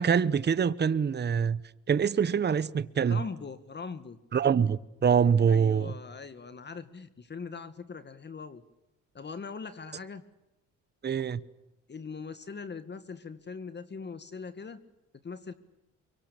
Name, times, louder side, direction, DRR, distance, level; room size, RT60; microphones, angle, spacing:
voice 1, 0.0-1.6 1.9-3.2 4.3-5.9 11.0-11.4, right 7 dB, 35° right, 1.0 m, -25 dB
voice 2, 3.1-4.2 5.5-8.6 9.1-10.2 11.9-14.8 15.2-15.5, left 5 dB, 35° left, 1.8 m, -41 dB
24.5 x 23.0 x 8.6 m
cardioid pair, 90°, 30 cm